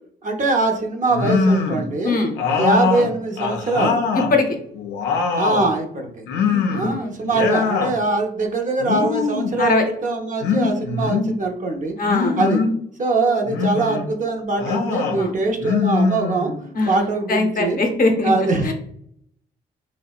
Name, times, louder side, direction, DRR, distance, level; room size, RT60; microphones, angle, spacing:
voice 1, 0.2-2.2 2.5-4.0 5.4-6.2 6.7-11.9 12.4-12.6 13.0-16.5 16.9-17.8 18.2-18.7, right 3 dB, 40° right, 3 dB, 0.6 m, -22 dB
sound 1, 1.1-1.9 2.4-4.3 4.7-5.7 6.3-6.9 7.2-8.0 8.8-9.6 10.4-11.3 12.1-12.8 13.4-14.1 14.6-15.2 15.6-16.7, left 4 dB, 90° left, 0.4 m, -22 dB
voice 2, 2.0-2.3 4.1-4.5 6.5-7.1 9.6-9.8 12.0-12.4 15.2-15.3 16.7-18.3 18.6-18.7, left 3 dB, 50° left, 3 dB, 0.6 m, -21 dB
2.7 x 2.0 x 2.3 m, 0.67 s
supercardioid pair, 55°, 19 cm